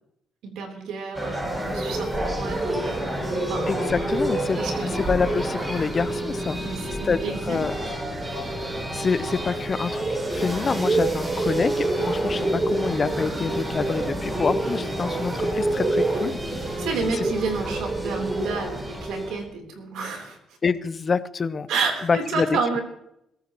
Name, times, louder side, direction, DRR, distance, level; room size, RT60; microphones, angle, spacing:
voice 1, 0.4-3.7 4.6-5.0 6.6-7.7 16.8-20.4 21.7-22.8, right 4 dB, 90° right, 2 dB, 3.5 m, -30 dB
sound 1, 1.1-19.5, right 1 dB, 25° right, 6.4 m, -27 dB
voice 2, 3.7-4.6 5.1-6.6 7.0-7.7 8.9-10.0 10.3-16.4 20.6-21.7 22.1-22.5, left 5 dB, 40° left, 15 dB, 0.7 m, -26 dB
22.0 x 13.5 x 3.1 m, 0.78 s
cardioid pair, 90°, 0 cm